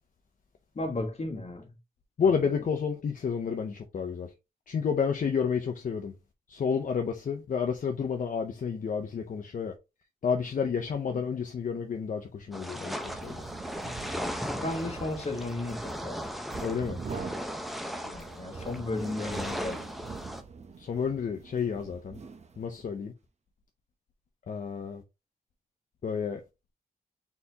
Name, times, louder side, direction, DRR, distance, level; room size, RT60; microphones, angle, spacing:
voice 1, 0.7-1.7 14.5-16.3 18.0-19.9, left 2 dB, 45° left, 1.3 m, -34 dB
voice 2, 2.2-4.3 4.7-6.1 6.5-9.8 10.2-13.4 16.6-17.0 20.8-22.2 22.6-23.1 24.5-25.0 26.0-26.4, left 6 dB, 60° left, 0.6 m, -30 dB
sound 1, 12.5-20.4, equal, ahead, 0.6 m, -37 dB
sound 2, 12.9-22.9, right 5 dB, 50° right, 0.7 m, -44 dB
4.1 x 4.0 x 2.8 m
wide cardioid pair, 110°, 15 cm